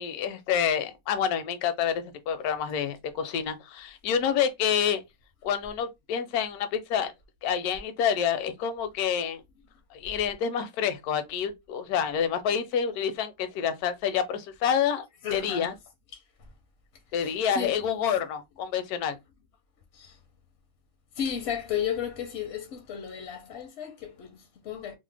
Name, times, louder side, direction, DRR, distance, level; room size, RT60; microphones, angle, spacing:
voice 1, 0.0-5.0 5.4-7.1 7.4-9.4 9.9-15.0 15.3-15.7 17.1-19.2, left 8 dB, 80° left, 1.1 m, -28 dB
voice 2, 15.2-15.7 16.1-16.5 17.1-17.8 19.9-20.2 21.1-25.0, left 8 dB, 65° left, 0.7 m, -34 dB
2.8 x 2.1 x 3.2 m
omnidirectional pair, 1.6 m